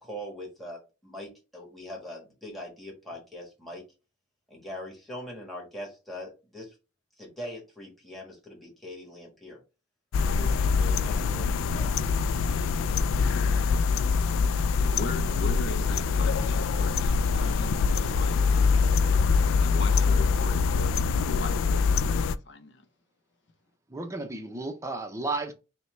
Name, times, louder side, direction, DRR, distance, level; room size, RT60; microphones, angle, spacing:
voice 1, 0.0-3.8 4.5-6.7 7.2-9.6 10.2-12.2, left 1 dB, ahead, 1.4 m, -42 dB
sound 1, 10.1-22.4, left 5 dB, 90° left, 0.3 m, -24 dB
voice 2, 15.0-19.1 19.6-22.8, left 3 dB, 60° left, 0.7 m, -40 dB
voice 3, 23.9-25.5, right 2 dB, 15° right, 0.6 m, -33 dB
5.5 x 2.2 x 3.2 m
head